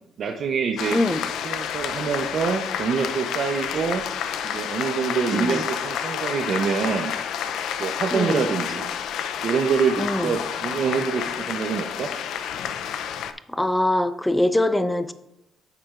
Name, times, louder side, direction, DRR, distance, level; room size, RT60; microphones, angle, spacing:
voice 1, 0.2-1.0 1.4-4.0 4.4-7.1 7.8-8.9 9.4-12.1, right 6 dB, 60° right, 3 dB, 0.8 m, -25 dB
sound 1, 0.8-13.3, left 8 dB, 80° left, 0.5 m, -29 dB
voice 2, 0.9-1.2 5.3-5.7 8.1-8.4 10.0-10.3 13.5-15.1, left 1 dB, 10° left, 11 dB, 0.6 m, -23 dB
10.5 x 7.5 x 2.5 m, 0.84 s
cardioid pair, 90°, 0 cm